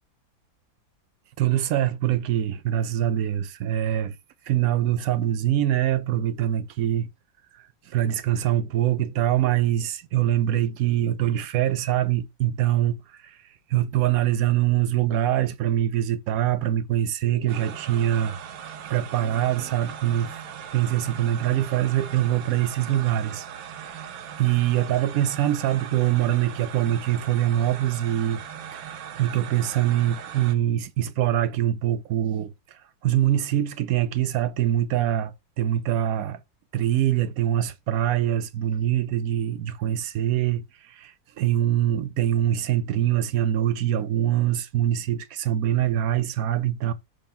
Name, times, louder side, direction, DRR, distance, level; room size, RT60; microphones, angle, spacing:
voice 1, 1.4-4.2 4.5-7.1 7.9-13.4 13.7-18.4 18.9-20.4 20.7-23.4 23.8-24.0 24.4-28.4 28.7-32.5 33.0-36.4 36.7-46.9, right 12 dB, 60° right, 1.0 m, -24 dB
sound 1, 17.5-30.5, right 8 dB, 90° right, 1.7 m, -39 dB
6.9 x 2.9 x 5.7 m
omnidirectional pair, 2.1 m